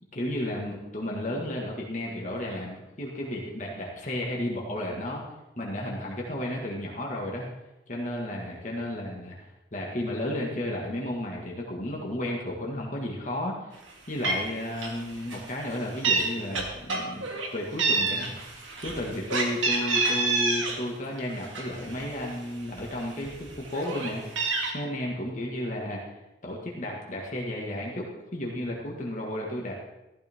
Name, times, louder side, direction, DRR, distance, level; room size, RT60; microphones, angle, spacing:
voice 1, 0.1-5.2 5.6-7.5 7.9-13.8 14.1-18.3 18.8-26.0 26.4-29.8, left 1 dB, 40° left, -2 dB, 1.7 m, -33 dB
Meow, 13.9-14.0 14.2-14.5 14.8-15.0 15.3-16.2 16.5-17.5 17.8-20.8 21.2-22.3 22.8-22.9 23.2-24.7, right 3 dB, 85° right, 2.2 m, -27 dB
15.0 x 12.0 x 3.6 m, 0.99 s
head